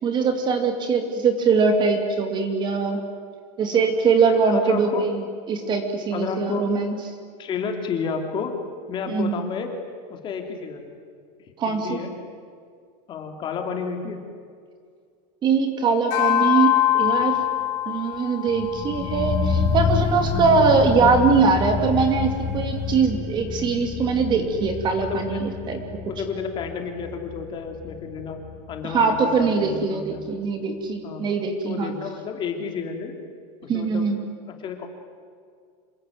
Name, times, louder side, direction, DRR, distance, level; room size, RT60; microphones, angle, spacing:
voice 1, 0.0-3.0 3.6-7.0 9.1-9.4 11.6-12.0 15.4-17.4 17.9-25.8 28.8-31.9 33.7-34.2, right 5 dB, 20° right, 6 dB, 2.5 m, -22 dB
voice 2, 4.5-5.0 6.1-6.7 7.4-8.5 8.9-9.7 10.1-11.0 11.7-12.1 13.1-14.2 23.1-23.3 25.0-25.4 26.1-28.4 28.7-30.2 31.0-31.2 31.6-33.1 33.6-34.1 34.5-34.9, left 6 dB, 25° left, 4 dB, 2.8 m, -31 dB
sound 1, 16.1-20.7, left 13 dB, 50° left, 4.5 m, -24 dB
sound 2, 18.5-29.5 29.7-29.8, left 6 dB, 5° left, 1.6 m, -28 dB
27.0 x 23.0 x 9.3 m, 2.2 s
supercardioid pair, 175°, 21 cm